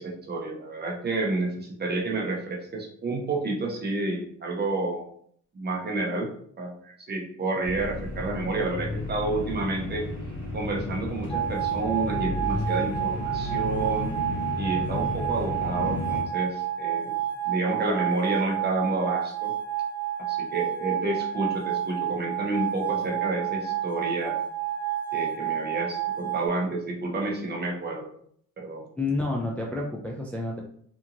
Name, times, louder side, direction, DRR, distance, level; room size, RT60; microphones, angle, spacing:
voice 1, 0.0-5.0 5.5-6.3 6.6-10.1 10.5-14.1 14.6-17.2 17.4-19.5 20.3-24.4 25.1-28.1 28.6-28.8, right 2 dB, 35° right, 0 dB, 0.8 m, -30 dB
sound 1, 7.6-16.2, left 2 dB, 40° left, 1.2 m, -33 dB
sound 2, 11.3-26.5, right 11 dB, 90° left, 0.9 m, -30 dB
voice 2, 29.0-30.6, left 2 dB, 5° left, -2 dB, 0.3 m, -29 dB
2.9 x 2.5 x 2.5 m, 0.62 s
cardioid pair, 90°, 30 cm